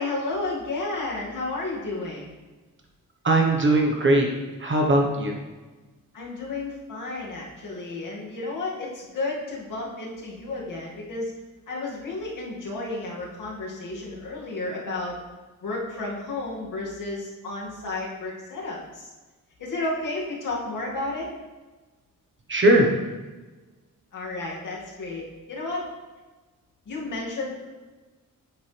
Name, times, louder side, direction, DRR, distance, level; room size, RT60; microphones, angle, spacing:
voice 1, 0.0-2.3 6.1-11.3 11.7-15.2 15.6-19.1 19.6-21.3 24.1-25.8 26.9-27.7, left 2 dB, 60° left, -4 dB, 2.4 m, -32 dB
voice 2, 3.2-4.3 4.6-5.4 22.5-22.9, right 1 dB, 35° right, 1 dB, 1.2 m, -19 dB
9.5 x 7.3 x 3.4 m, 1.2 s
wide cardioid pair, 155°, 35 cm